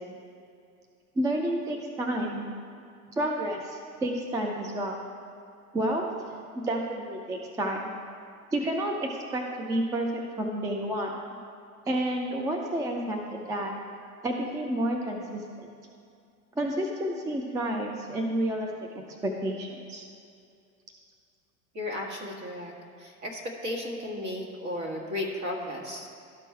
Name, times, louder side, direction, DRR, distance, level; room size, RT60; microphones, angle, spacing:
voice 1, 1.2-2.5 3.2-5.0 5.7-6.1 6.5-7.9 8.5-10.1 10.4-11.1 11.9-13.7 14.2-15.4 16.6-18.7 19.2-20.0, right 1 dB, 10° right, 1 dB, 0.3 m, -30 dB
voice 2, 21.7-26.1, left 1 dB, 40° right, 0 dB, 1.8 m, -34 dB
12.5 x 4.5 x 4.5 m, 2.4 s
hypercardioid pair, 90°, 44 cm